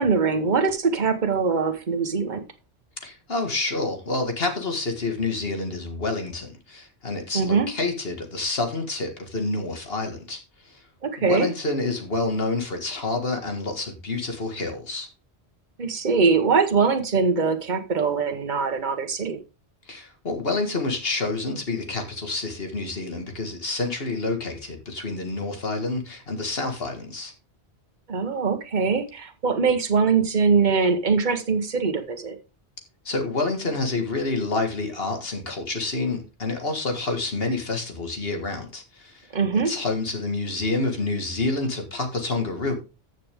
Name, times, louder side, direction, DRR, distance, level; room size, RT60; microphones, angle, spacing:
voice 1, 0.0-2.4 7.3-7.7 11.0-11.5 15.8-19.4 28.1-32.4 39.3-39.7, right 5 dB, 45° right, 1.3 m, -22 dB
voice 2, 3.0-10.8 11.2-15.1 19.9-27.3 33.1-39.3 39.5-42.7, left 3 dB, 60° left, 2.1 m, -28 dB
14.5 x 6.5 x 3.6 m
omnidirectional pair, 1.1 m